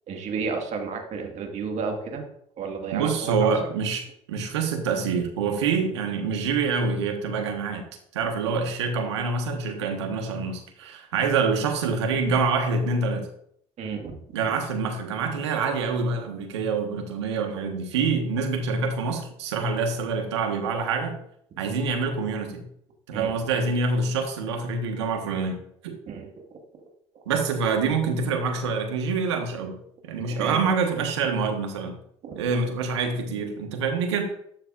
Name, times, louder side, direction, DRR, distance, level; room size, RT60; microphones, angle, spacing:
voice 1, 0.1-2.2 2.6-3.5 13.8-14.2 23.1-23.3 26.1-26.3 30.3-30.6 32.2-32.3, right 5 dB, 55° right, 3 dB, 1.8 m, -31 dB
voice 2, 2.9-4.0 4.3-7.8 8.1-13.3 14.3-21.2 21.6-22.6 23.1-26.0 27.3-29.8 30.0-32.0 32.3-34.2, right 4 dB, 85° right, 4 dB, 1.4 m, -26 dB
12.0 x 6.6 x 2.5 m, 0.68 s
hypercardioid pair, 60°, 14 cm